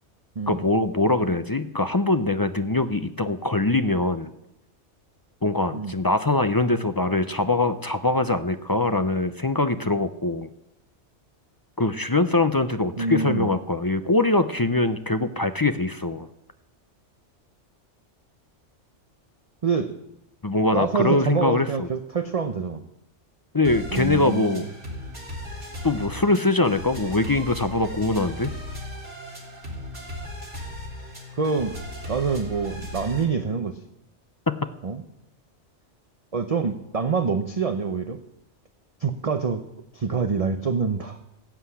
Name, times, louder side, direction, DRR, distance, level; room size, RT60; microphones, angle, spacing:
voice 1, 0.5-4.3 5.4-10.5 11.8-16.3 20.4-21.9 23.5-24.7 25.8-28.5 34.5-34.6, left 2 dB, 30° left, 10 dB, 0.4 m, -23 dB
voice 2, 13.0-13.5 19.6-19.9 20.7-22.8 23.9-24.7 31.4-31.8 32.1-33.8 34.8-35.0 36.3-38.2 39.0-39.6 39.9-41.2, right 5 dB, 35° right, 8 dB, 0.7 m, -26 dB
sound 1, 23.6-33.2, left 1 dB, 80° right, 3.4 m, -37 dB
15.0 x 7.9 x 8.5 m, 0.85 s
omnidirectional pair, 1.2 m